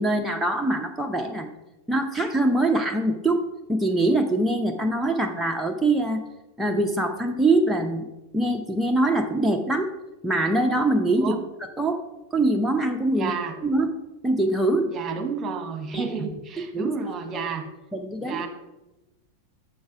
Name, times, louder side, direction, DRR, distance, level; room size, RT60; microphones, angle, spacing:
voice 1, 0.0-1.5 1.9-3.4 3.7-6.2 6.6-8.1 8.3-9.9 10.2-11.3 11.8-12.0 12.3-13.3 13.6-13.9 14.2-14.9 15.9-16.1 16.6-16.9 17.9-18.4, right 2 dB, 5° right, 2 dB, 0.7 m, -23 dB
voice 2, 13.1-13.6 14.9-17.7 18.2-18.5, right 5 dB, 25° right, 6 dB, 1.2 m, -31 dB
7.0 x 6.3 x 4.9 m, 1.0 s
figure-of-eight pair, 90°, 0 cm